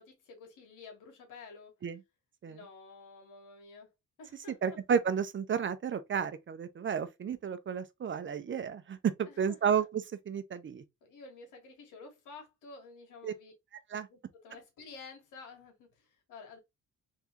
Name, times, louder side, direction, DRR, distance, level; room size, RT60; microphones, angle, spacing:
voice 1, 0.0-1.7 2.5-3.9 4.2-4.8 9.3-9.9 11.0-13.5 14.1-16.6, left 4 dB, 90° left, 1.9 m, -51 dB
voice 2, 4.6-10.8 13.2-13.3 13.9-14.1, right 7 dB, 40° right, 0.7 m, -32 dB
3.7 x 3.4 x 2.9 m
cardioid pair, 90°, 30 cm